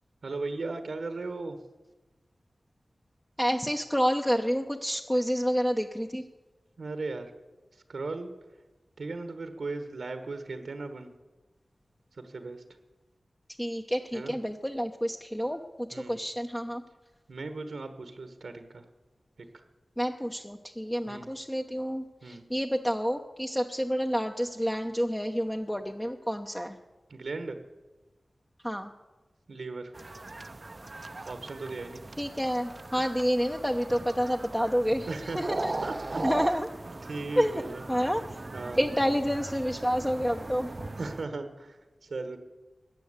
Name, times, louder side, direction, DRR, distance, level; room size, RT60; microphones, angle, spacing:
voice 1, 0.2-1.6 6.8-7.3 7.9-8.3 9.0-11.1 12.2-12.6 14.1-14.3 15.9-16.2 17.3-18.8 21.1-21.3 22.2-22.5 27.1-27.6 29.5-29.9 31.3-32.0 35.0-35.4 35.8-36.2 37.1-37.8 38.5-38.9 41.0-41.8 42.0-42.4, right 3 dB, 85° right, 8 dB, 1.4 m, -37 dB
voice 2, 3.4-6.2 13.6-16.8 20.0-26.8 28.6-28.9 32.2-35.7 36.2-36.7 37.4-37.6 37.9-38.2 38.8-40.7, equal, 10° left, 2 dB, 0.9 m, -29 dB
sound 1, 29.9-41.2, right 2 dB, 45° right, 0.7 m, -38 dB
15.0 x 9.3 x 8.1 m, 1.1 s
cardioid pair, 50°, 0 cm